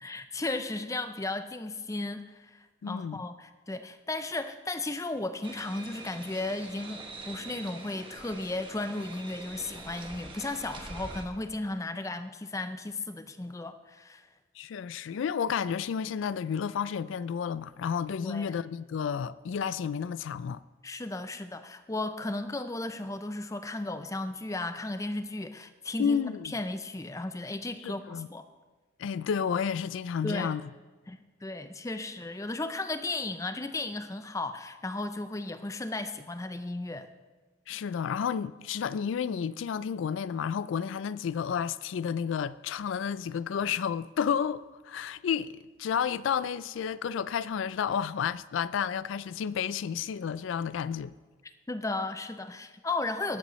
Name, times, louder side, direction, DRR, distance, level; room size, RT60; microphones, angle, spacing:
voice 1, 0.0-14.2 18.2-18.5 20.8-26.2 26.4-28.4 30.2-30.6 31.1-37.1 51.7-53.4, left 2 dB, 15° left, 0.5 m, -35 dB
voice 2, 2.8-3.2 14.6-20.6 26.0-26.5 27.8-28.3 29.0-30.7 37.7-51.1, left 7 dB, 75° left, 0.3 m, -31 dB
sound 1, 5.4-11.3, right 2 dB, 25° right, 1.0 m, -44 dB
19.0 x 8.2 x 3.1 m
head